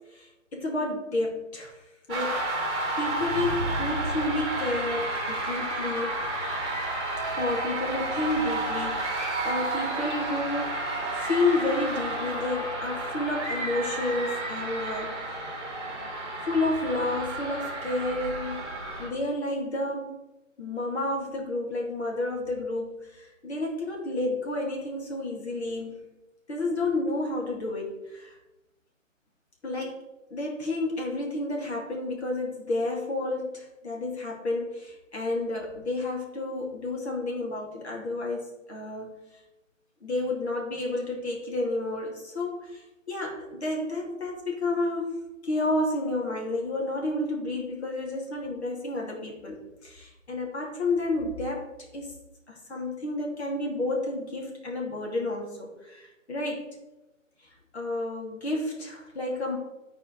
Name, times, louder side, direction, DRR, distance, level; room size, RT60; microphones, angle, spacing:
voice 1, 0.0-1.8 2.1-6.2 7.4-10.8 11.1-15.6 16.4-18.7 19.0-20.2 20.6-26.0 26.5-28.4 29.6-30.0 30.3-39.1 40.0-51.7 51.9-52.1 52.5-56.7 57.7-59.6, left 2 dB, 55° left, -2 dB, 2.3 m, -31 dB
sound 1, 2.1-19.1, right 2 dB, 20° right, 1.9 m, -31 dB
10.0 x 4.3 x 5.2 m, 0.99 s
hypercardioid pair, 160°, 39 cm